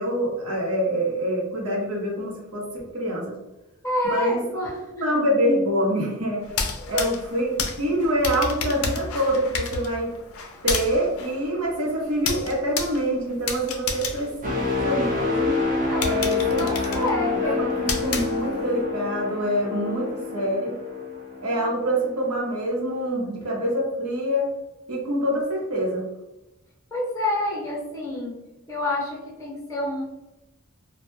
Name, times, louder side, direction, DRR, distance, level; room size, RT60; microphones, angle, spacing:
voice 1, 0.0-3.3 4.0-4.4 5.0-6.5 6.9-10.1 10.6-15.6 16.0-20.8 21.4-24.5 24.9-26.0, equal, 90° right, -2 dB, 0.8 m, -26 dB
voice 2, 3.8-5.0 6.8-7.1 15.9-17.7 26.9-30.0, left 2 dB, 15° left, -5 dB, 0.7 m, -29 dB
sound 1, 6.4-15.2 15.6-15.7 16.0-18.8, left 5 dB, 75° left, 0.4 m, -31 dB
sound 2, 14.4-22.2 22.7-22.9, left 4 dB, 40° right, 0.6 m, -27 dB
2.1 x 2.1 x 3.0 m, 0.99 s
head